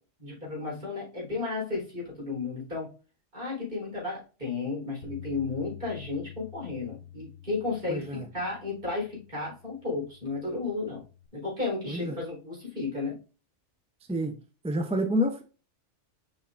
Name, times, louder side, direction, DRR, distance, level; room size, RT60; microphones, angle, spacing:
voice 1, 0.2-2.9 3.3-11.0 11.3-13.2, left 3 dB, 45° right, 4.1 m, -33 dB
Bass guitar, 5.0-11.3, left 10 dB, 75° left, 1.0 m, -48 dB
voice 2, 7.9-8.3 11.9-12.2 14.1-14.4 14.6-15.4, equal, 10° right, 0.4 m, -28 dB
7.1 x 5.9 x 2.5 m
omnidirectional pair, 1.2 m